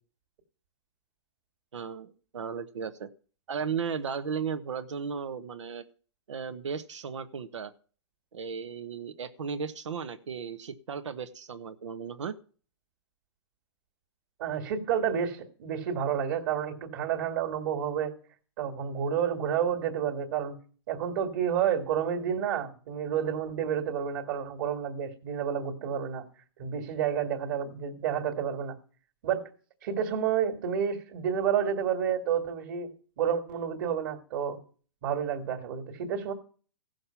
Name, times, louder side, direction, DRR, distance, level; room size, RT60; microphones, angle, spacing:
voice 1, 1.7-3.1 3.5-5.8 6.3-7.7 8.3-12.3, right 6 dB, 85° right, 9 dB, 1.2 m, -35 dB
voice 2, 14.4-18.1 18.6-20.6 20.9-26.3 26.6-28.8 29.2-29.4 29.8-32.9 33.2-34.6 35.0-36.3, right 8 dB, 35° right, 3 dB, 1.9 m, -30 dB
16.0 x 6.5 x 5.8 m, 0.40 s
hypercardioid pair, 170°, 15 cm